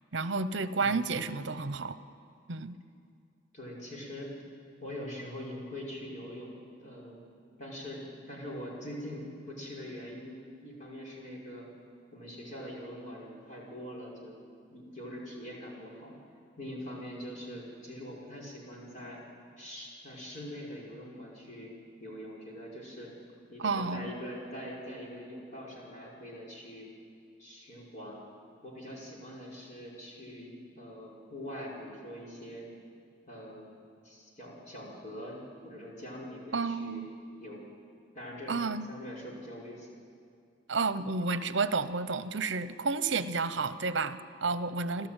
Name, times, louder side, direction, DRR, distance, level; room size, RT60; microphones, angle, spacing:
voice 1, 0.1-2.0 2.5-2.8 23.6-24.1 36.5-37.1 38.5-38.9 40.7-45.1, right 4 dB, 60° right, 13 dB, 0.9 m, -31 dB
voice 2, 0.8-1.2 3.5-4.3 4.8-7.2 7.6-8.0 8.3-11.7 12.1-14.4 14.7-16.1 16.6-19.2 19.6-21.7 22.0-23.1 23.5-26.9 27.4-28.2 28.6-32.7 33.3-33.7 34.0-37.0 37.4-37.6 38.1-39.9 45.0-45.1, equal, 40° left, -3 dB, 5.7 m, -43 dB
28.0 x 13.0 x 9.0 m, 2.4 s
head